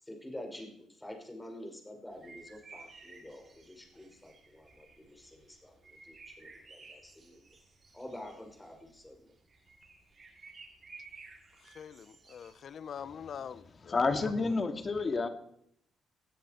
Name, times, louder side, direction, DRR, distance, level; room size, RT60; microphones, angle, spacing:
voice 1, 0.0-7.5 7.9-9.3, left 1 dB, 10° left, 5.3 m, -48 dB
sound 1, 2.1-13.8, right 3 dB, 35° right, 6.4 m, -55 dB
voice 2, 11.6-14.0 14.5-14.6, left 8 dB, 55° left, 0.8 m, -44 dB
voice 3, 13.8-15.3, left 4 dB, 35° left, 2.2 m, -29 dB
19.5 x 13.5 x 4.5 m
cardioid pair, 90°, 0 cm